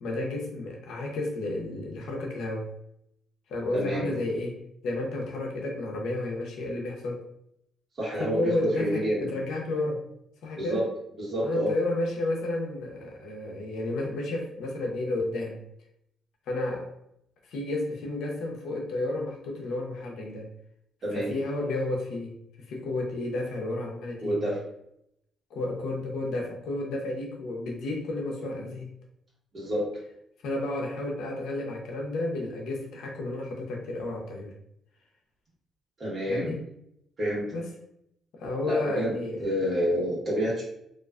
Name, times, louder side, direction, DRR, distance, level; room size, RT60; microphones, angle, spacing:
voice 1, 0.0-2.7 3.5-7.2 8.2-10.0 10.4-10.8 11.4-15.6 16.5-16.9 17.5-20.5 21.1-24.5 25.5-28.9 30.4-34.5 36.3-36.6 37.5-37.7 38.3-39.6, left 2 dB, 80° left, 0 dB, 0.6 m, -32 dB
voice 2, 3.7-4.1 8.0-8.5 8.8-9.3 10.6-10.8 11.2-11.7 21.0-21.3 24.2-24.6 29.5-29.8 36.0-36.5 37.2-37.6 38.6-40.6, equal, 45° right, -6 dB, 1.1 m, -28 dB
2.4 x 2.3 x 2.3 m, 0.76 s
cardioid pair, 90°, 0 cm